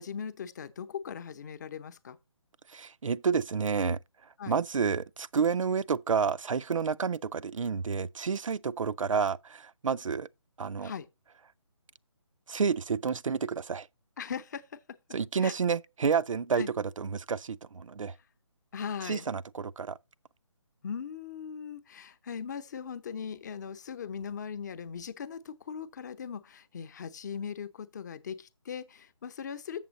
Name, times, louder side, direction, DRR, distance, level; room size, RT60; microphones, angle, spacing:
voice 1, 0.0-2.2 4.4-4.6 10.8-11.1 14.2-14.6 15.4-15.5 16.6-16.7 18.7-19.3 20.8-29.8, left 7 dB, 35° left, 0.7 m, -39 dB
voice 2, 2.7-4.0 4.5-10.3 10.6-10.9 12.5-13.9 15.1-18.1 19.0-20.0, right 6 dB, 85° right, 0.4 m, -30 dB
7.2 x 7.2 x 4.0 m
figure-of-eight pair, 155°, 16 cm